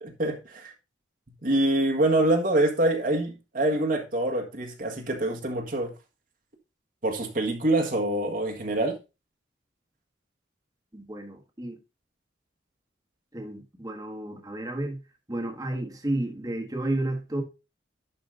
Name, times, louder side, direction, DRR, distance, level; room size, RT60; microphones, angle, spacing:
voice 1, 0.0-0.7 1.4-5.9 7.0-9.0, right 1 dB, 45° right, 1.7 m, -25 dB
voice 2, 10.9-11.8 13.3-15.0 15.3-17.4, right 1 dB, 20° right, 1.7 m, -32 dB
11.5 x 5.1 x 3.8 m
head